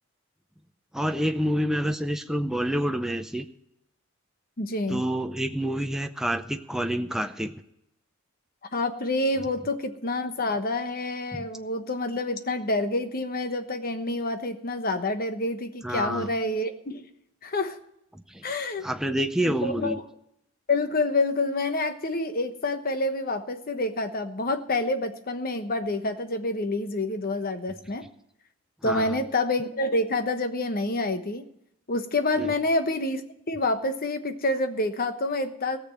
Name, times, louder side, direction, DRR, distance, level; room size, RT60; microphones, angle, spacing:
voice 1, 0.9-3.5 4.9-7.5 11.3-11.5 15.8-16.3 18.1-18.4 18.8-20.0 28.8-29.2 32.4-32.5, equal, ahead, 6 dB, 0.5 m, -28 dB
voice 2, 4.6-5.0 8.7-17.1 17.4-17.8 18.4-18.9 19.4-20.0 20.7-28.1 28.8-31.5 31.9-33.2 33.5-35.8, left 2 dB, 45° left, 9 dB, 1.1 m, -28 dB
17.5 x 6.8 x 7.5 m, 0.78 s
head